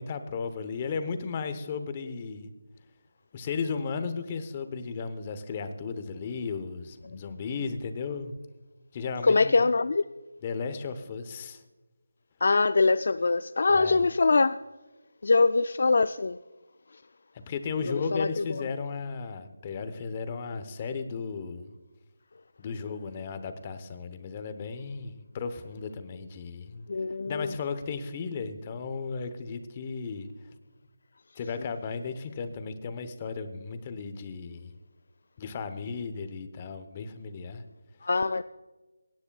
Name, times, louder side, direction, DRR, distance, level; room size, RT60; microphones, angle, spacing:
voice 1, 0.0-2.5 3.3-8.3 8.9-9.6 10.4-11.6 13.7-14.0 17.3-21.7 22.6-26.8 27.3-30.3 31.4-34.7 35.4-37.6, left 5 dB, 25° left, 10 dB, 0.9 m, -35 dB
voice 2, 9.2-10.0 12.4-14.5 15.2-16.4 17.8-18.6 26.9-27.5 38.0-38.4, left 3 dB, 55° left, 12 dB, 0.3 m, -23 dB
24.5 x 9.7 x 2.3 m, 1.2 s
figure-of-eight pair, 165°, 0 cm